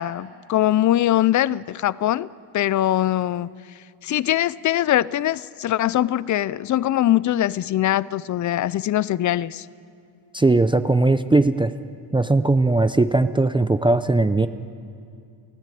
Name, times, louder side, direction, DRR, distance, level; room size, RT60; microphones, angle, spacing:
voice 1, 0.0-2.3 2.5-3.5 4.0-9.7, left 13 dB, 40° left, 20 dB, 0.5 m, -22 dB
voice 2, 10.3-11.7 12.1-14.5, right 2 dB, 10° right, 11 dB, 0.5 m, -19 dB
30.0 x 16.0 x 9.2 m, 2.5 s
cardioid pair, 135°, 48 cm